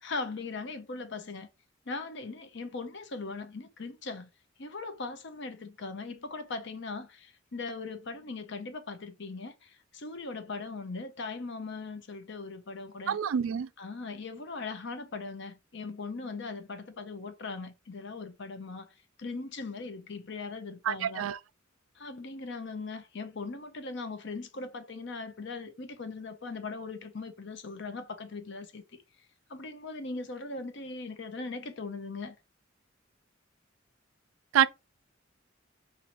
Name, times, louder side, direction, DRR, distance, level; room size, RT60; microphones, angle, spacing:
voice 1, 0.0-1.5 1.9-4.3 4.6-13.2 13.8-21.3 22.0-28.8 29.5-32.4, left 3 dB, 60° left, 0.8 m, -39 dB
voice 2, 13.1-13.7 20.9-21.4 34.5-34.7, right 9 dB, 85° right, 0.4 m, -26 dB
5.6 x 2.7 x 3.1 m
head